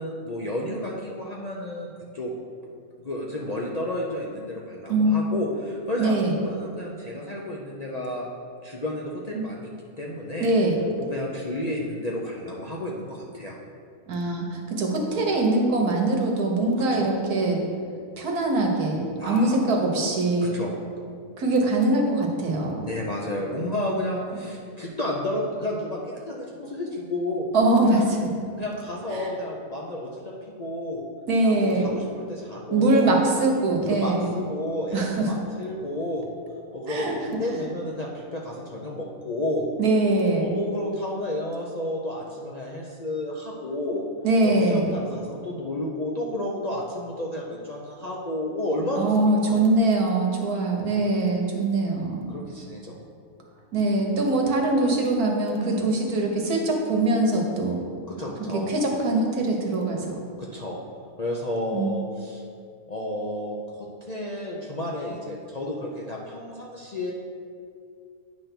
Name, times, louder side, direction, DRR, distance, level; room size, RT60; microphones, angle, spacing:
voice 1, 0.0-2.3 3.0-8.3 8.6-9.7 10.0-10.5 11.0-13.6 16.8-17.1 19.2-19.7 20.5-20.7 22.8-27.5 27.9-28.0 28.6-31.0 31.4-33.1 33.9-36.3 36.7-39.7 40.4-44.0 44.4-49.1 49.4-49.6 52.3-53.0 55.5-55.9 58.1-58.7 60.4-60.8 61.2-62.4 62.9-67.1, left 1 dB, 45° left, -3 dB, 0.5 m, -31 dB
voice 2, 6.0-6.4 9.3-9.5 10.4-10.8 14.1-17.6 18.2-20.6 21.4-22.9 24.3-24.4 27.5-28.3 29.1-29.3 31.3-31.9 32.7-34.3 34.9-35.3 36.9-37.2 37.5-37.7 39.8-40.6 44.2-44.9 49.0-52.3 53.7-57.8 58.5-60.2 61.7-61.9, right 2 dB, 85° right, 1 dB, 1.6 m, -23 dB
9.4 x 3.4 x 5.9 m, 2.2 s
omnidirectional pair, 1.5 m